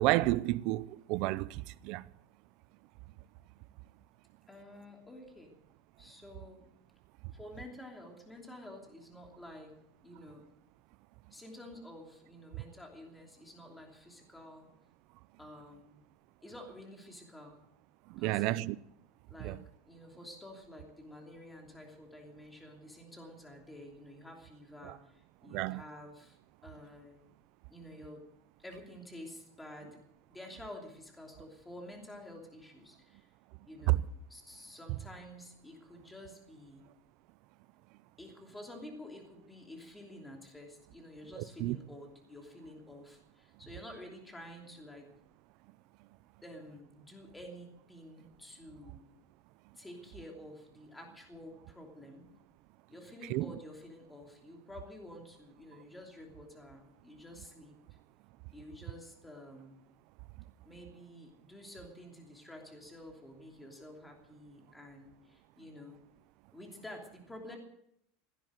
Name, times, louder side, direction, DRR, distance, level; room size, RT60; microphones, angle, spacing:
voice 1, 0.0-2.1 18.1-18.8 19.4-19.6 24.8-24.9 25.5-25.8 33.9-34.0 41.4-41.8 53.3-53.5, right 19 dB, 50° right, 0.5 m, -30 dB
voice 2, 4.5-5.5 6.0-6.7 7.3-9.7 10.0-10.4 11.3-14.7 15.4-16.0 16.4-17.6 18.2-18.7 19.3-27.3 27.7-28.2 28.6-30.0 30.3-33.3 33.7-34.0 34.3-36.8 38.2-45.1 46.4-49.0 49.7-52.2 52.9-57.8 58.5-59.8 60.6-66.0 66.5-67.6, left 1 dB, 5° left, 3.0 m, -50 dB
16.5 x 10.5 x 7.5 m
supercardioid pair, 165°, 0 cm